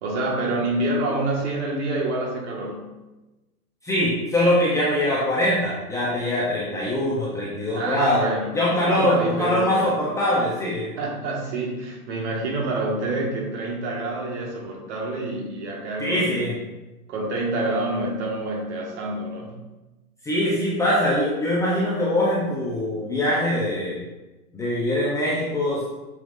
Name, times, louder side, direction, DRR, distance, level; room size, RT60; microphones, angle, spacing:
voice 1, 0.0-3.0 7.7-8.5 8.8-9.9 11.0-16.5 17.1-19.7, right 2 dB, 45° right, -2 dB, 1.9 m, -27 dB
voice 2, 3.8-8.3 8.5-10.9 16.0-16.5 20.2-24.0 24.5-25.8, left 1 dB, 5° left, -7 dB, 0.8 m, -23 dB
6.8 x 5.9 x 2.6 m, 1.1 s
hypercardioid pair, 135°, 46 cm